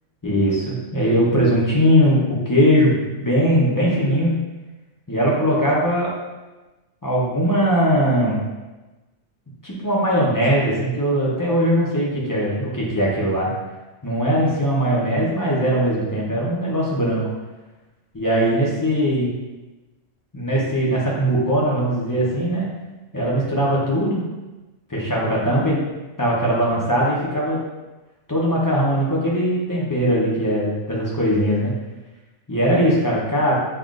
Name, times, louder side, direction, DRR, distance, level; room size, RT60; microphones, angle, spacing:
voice 1, 0.2-4.3 5.1-6.1 7.0-8.4 9.6-13.5 14.0-17.3 18.1-19.3 20.3-22.7 23.1-24.2 24.9-25.8 26.2-27.6 28.3-31.7 32.5-33.5, equal, 20° left, -5 dB, 0.6 m, -20 dB
5.6 x 2.4 x 2.5 m, 1.1 s
omnidirectional pair, 1.3 m